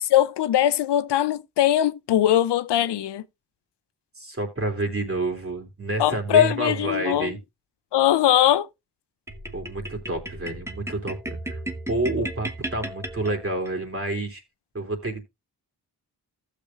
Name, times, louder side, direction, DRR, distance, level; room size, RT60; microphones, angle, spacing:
voice 1, 0.0-3.2 6.0-7.3 7.9-8.7, left 11 dB, 90° left, 0.6 m, -21 dB
voice 2, 4.2-7.4 9.5-11.6 11.9-14.4 14.7-15.2, right 2 dB, 35° right, 3.1 m, -29 dB
sound 1, 9.3-13.7, right 1 dB, 5° right, 1.2 m, -35 dB
15.0 x 6.9 x 2.4 m
cardioid pair, 50°, 40 cm